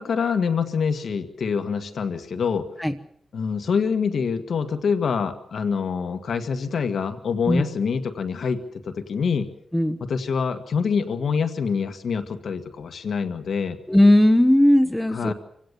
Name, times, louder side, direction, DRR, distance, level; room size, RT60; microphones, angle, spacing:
voice 1, 0.0-2.7 3.3-9.5 10.0-13.8 15.1-15.3, left 6 dB, 75° left, 8 dB, 1.7 m, -25 dB
voice 2, 13.9-15.3, left 1 dB, 5° left, 8 dB, 1.1 m, -17 dB
26.0 x 16.5 x 6.9 m, 0.68 s
wide cardioid pair, 110°, 0 cm